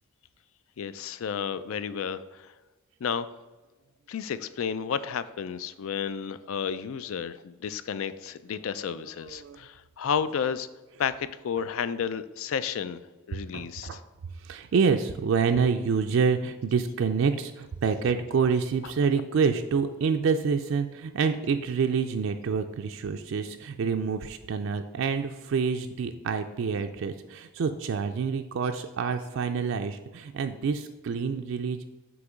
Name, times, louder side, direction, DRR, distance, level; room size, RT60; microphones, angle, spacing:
voice 1, 0.8-2.4 3.0-3.3 4.1-10.7 11.0-13.0 13.3-13.9, left 7 dB, 70° left, 14 dB, 0.4 m, -32 dB
voice 2, 8.7-9.6 13.5-14.0 14.4-31.9, right 5 dB, 60° right, 6 dB, 0.3 m, -27 dB
7.9 x 3.0 x 4.9 m, 1.2 s
head